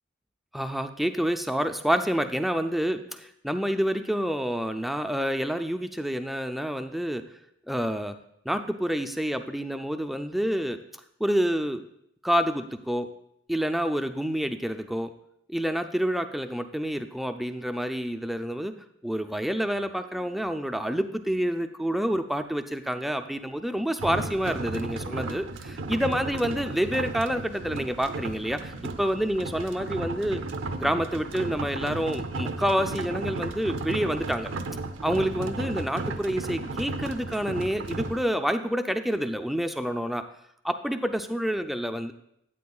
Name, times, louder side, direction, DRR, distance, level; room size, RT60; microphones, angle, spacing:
voice 1, 0.5-7.2 7.7-8.2 8.5-10.8 11.2-11.8 12.2-13.1 13.5-15.1 15.5-18.7 19.0-28.7 29.0-30.4 30.7-34.5 35.0-40.2 40.6-42.1, equal, ahead, 7 dB, 0.4 m, -28 dB
sound 1, 24.0-38.2, right 2 dB, 70° right, 0.6 m, -34 dB
12.0 x 8.6 x 2.3 m, 0.74 s
head